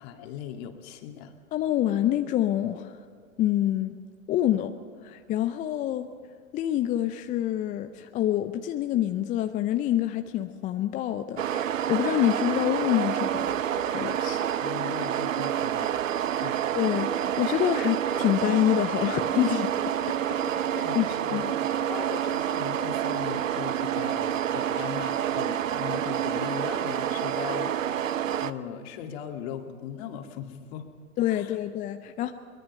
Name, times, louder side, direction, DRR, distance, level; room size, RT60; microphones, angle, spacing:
voice 1, 0.0-1.3 14.6-16.0 16.4-16.6 20.7-21.4 21.8-27.8 28.4-30.8 31.3-31.6, left 9 dB, 45° left, 5 dB, 2.2 m, -38 dB
voice 2, 1.5-3.0 3.4-4.0 4.3-4.7 5.0-6.1 6.5-14.5 16.3-19.7 20.1-20.2 20.7-21.1 21.3-21.5 31.2-32.3, left 12 dB, 20° left, 8 dB, 0.5 m, -27 dB
sound 1, 11.4-28.5, right 10 dB, 70° right, 0.8 m, -28 dB
22.5 x 21.5 x 5.5 m, 2.1 s
figure-of-eight pair, 105°, 41 cm